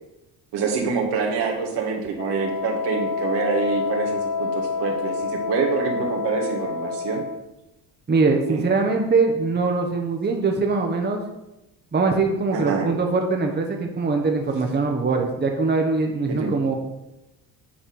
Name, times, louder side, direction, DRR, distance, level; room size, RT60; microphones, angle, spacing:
voice 1, 0.5-7.2 8.5-8.7 12.5-12.9 16.3-16.6, right 5 dB, 70° right, 1 dB, 1.9 m, -26 dB
Wind instrument woodwind instrument, 2.2-7.4, left 5 dB, 50° left, 0.8 m, -28 dB
voice 2, 8.1-11.2 11.9-16.8, right 4 dB, 25° right, 2 dB, 1.2 m, -22 dB
8.8 x 4.2 x 5.4 m, 0.94 s
supercardioid pair, 70°, 44 cm